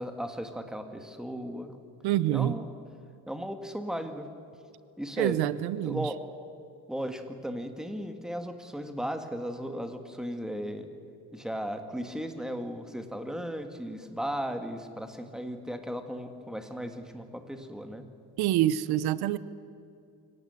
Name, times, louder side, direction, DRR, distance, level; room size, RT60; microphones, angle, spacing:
voice 1, 0.0-1.7 2.3-2.7 3.3-4.3 5.0-5.4 5.8-6.2 6.9-10.9 11.3-18.0, equal, ahead, 7 dB, 1.7 m, -36 dB
voice 2, 2.0-2.5 5.2-6.0 18.4-19.4, right 13 dB, 75° right, 17 dB, 0.8 m, -26 dB
24.5 x 17.5 x 8.1 m, 2.5 s
cardioid pair, 140°, 38 cm